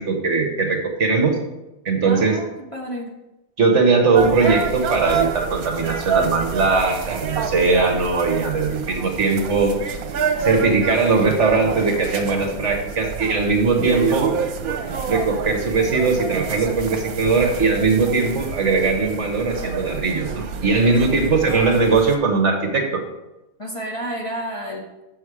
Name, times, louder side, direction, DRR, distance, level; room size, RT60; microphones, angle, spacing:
voice 1, 0.0-1.4 1.8-2.4 3.6-9.7 10.4-14.3 15.1-23.0, right 4 dB, 55° right, 3 dB, 1.3 m, -20 dB
voice 2, 2.0-3.1 23.6-25.0, right 1 dB, 25° left, -3 dB, 1.2 m, -31 dB
sound 1, 4.2-22.2, right 6 dB, 75° right, 1.3 m, -28 dB
6.9 x 6.3 x 4.9 m, 0.99 s
omnidirectional pair, 1.6 m